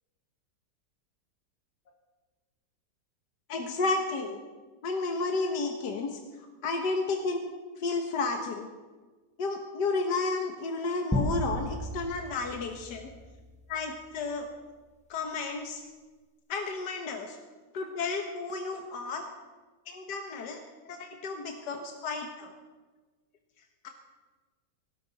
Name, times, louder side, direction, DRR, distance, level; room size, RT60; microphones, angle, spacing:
voice 1, 3.5-4.4 4.8-6.2 6.6-7.4 7.8-8.7 9.4-13.1 13.7-14.5 15.1-15.8 16.5-17.4 17.7-19.2 19.9-22.5 23.8-23.9, left 3 dB, 70° left, 3 dB, 1.8 m, -32 dB
sound 1, 11.1-13.6, equal, 5° left, 1.0 m, -33 dB
19.0 x 16.5 x 4.1 m, 1.3 s
omnidirectional pair, 1.9 m